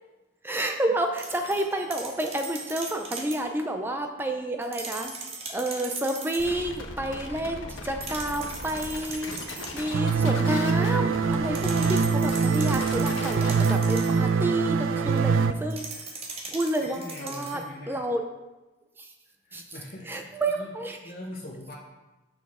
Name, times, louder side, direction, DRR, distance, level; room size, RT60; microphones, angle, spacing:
voice 1, 0.4-5.1 5.5-16.1 16.5-17.6 17.9-18.2 19.0-19.1 19.5-19.6 20.0-21.0, right 1 dB, 10° right, 4 dB, 0.4 m, -30 dB
sound 1, 1.2-3.5 4.6-6.6 8.0-10.0 11.5-14.3 15.7-17.7, right 3 dB, 30° right, 0.9 m, -39 dB
sound 2, 6.4-13.9, left 2 dB, 85° left, 0.9 m, -39 dB
sound 3, 9.9-15.5, right 5 dB, 90° right, 0.4 m, -24 dB
voice 2, 16.8-18.0 19.4-20.7 21.0-21.7, left 1 dB, 50° left, -3 dB, 0.8 m, -41 dB
6.9 x 6.1 x 3.6 m, 1.1 s
head